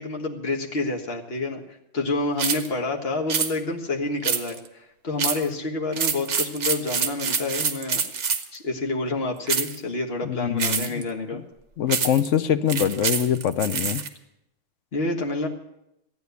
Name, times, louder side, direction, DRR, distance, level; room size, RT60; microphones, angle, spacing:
voice 1, 0.0-1.6 1.9-8.0 8.5-11.4 14.9-15.5, left 2 dB, 45° left, 1 dB, 1.8 m, -28 dB
sound 1, 2.4-2.7 3.3-3.5 4.2-4.7 5.2-5.5 5.9-8.6 9.5-9.8 10.6-11.0 11.9-12.3 12.7-14.1, right 6 dB, 55° right, 1.3 m, -26 dB
voice 2, 10.2-11.0 11.3-11.4 11.8-14.0, left 9 dB, 65° left, 11 dB, 0.9 m, -24 dB
13.5 x 9.3 x 8.2 m, 0.84 s
omnidirectional pair, 1.5 m